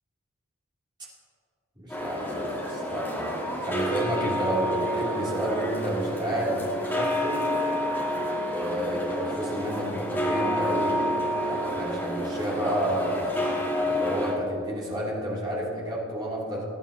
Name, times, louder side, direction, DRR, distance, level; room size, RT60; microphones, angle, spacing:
voice 1, 1.8-3.3 3.6-7.5 8.4-11.1 11.4-13.3 13.9-16.7, right 1 dB, 20° right, -6 dB, 2.8 m, -31 dB
sound 1, 1.9-14.3, equal, 10° left, 2.1 m, -29 dB
21.0 x 9.9 x 2.8 m, 2.6 s
head